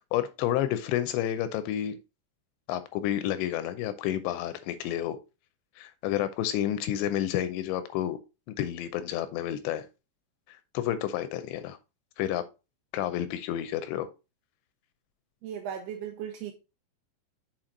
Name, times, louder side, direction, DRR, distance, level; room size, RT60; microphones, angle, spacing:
voice 1, 0.1-2.0 2.7-5.2 5.8-8.2 8.5-9.8 10.5-11.8 12.2-12.4 12.9-14.1, left 11 dB, 80° left, 2.7 m, -30 dB
voice 2, 15.4-16.5, right 8 dB, 80° right, 2.4 m, -36 dB
7.4 x 4.7 x 3.8 m
omnidirectional pair, 5.4 m